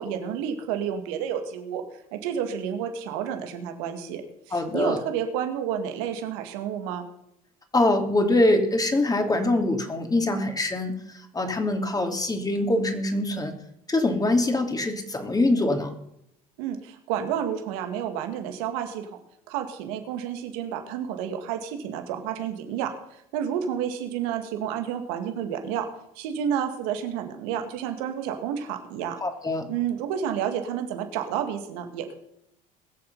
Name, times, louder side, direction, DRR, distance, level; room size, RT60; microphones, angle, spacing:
voice 1, 0.0-1.8 2.1-7.1 16.6-19.2 19.5-25.9 26.2-29.2 29.7-32.1, right 8 dB, 80° right, 6 dB, 2.1 m, -30 dB
voice 2, 4.5-5.0 7.7-13.5 13.9-16.0 29.2-29.7, left 2 dB, 20° left, 5 dB, 2.9 m, -24 dB
21.0 x 7.1 x 5.5 m, 0.77 s
hypercardioid pair, 75°, 18 cm